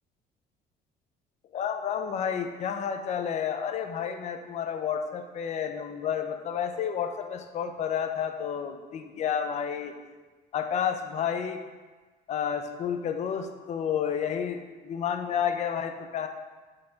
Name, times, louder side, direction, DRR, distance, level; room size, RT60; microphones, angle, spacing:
voice 1, 1.5-9.9 10.5-11.6 12.3-16.3, left 8 dB, 45° left, 6 dB, 0.4 m, -30 dB
3.8 x 2.5 x 4.4 m, 1.3 s
cardioid pair, 110°, 17 cm